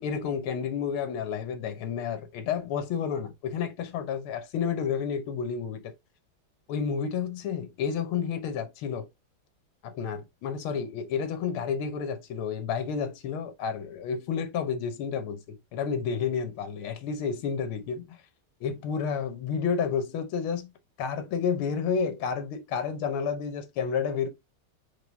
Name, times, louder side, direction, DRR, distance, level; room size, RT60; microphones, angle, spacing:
voice 1, 0.0-5.9 6.7-9.1 9.8-18.2 18.6-20.7 21.0-24.3, left 6 dB, 75° left, 1.6 m, -30 dB
4.7 x 3.3 x 2.6 m
omnidirectional pair, 2.4 m